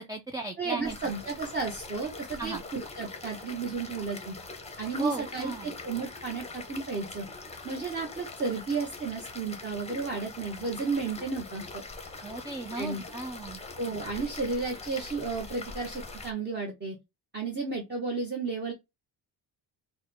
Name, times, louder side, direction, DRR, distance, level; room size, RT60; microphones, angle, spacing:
voice 1, 0.0-1.1 2.4-2.6 5.0-5.7 12.2-13.6, right 2 dB, 10° right, 0.3 m, -36 dB
voice 2, 0.6-4.4 4.8-7.3 7.6-11.8 12.7-13.0 13.8-17.0 17.3-18.7, right 4 dB, 25° right, 1.0 m, -33 dB
sound 1, 0.8-16.3, left 3 dB, 15° left, 0.7 m, -43 dB
3.5 x 2.2 x 4.2 m
cardioid pair, 125°, 41 cm